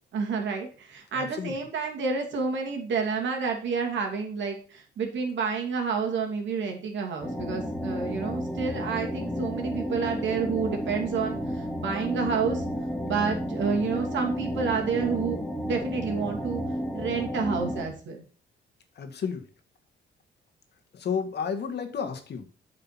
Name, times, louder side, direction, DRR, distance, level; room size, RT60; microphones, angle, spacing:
voice 1, 0.1-12.6 13.0-16.6 16.9-18.2, right 5 dB, 70° right, 2 dB, 2.7 m, -29 dB
voice 2, 1.1-1.5 19.0-19.4 20.9-22.5, left 6 dB, 60° left, 6 dB, 1.7 m, -31 dB
sound 1, 7.2-17.9, equal, ahead, 2.6 m, -32 dB
8.3 x 5.4 x 5.8 m, 0.40 s
cardioid pair, 90°, 20 cm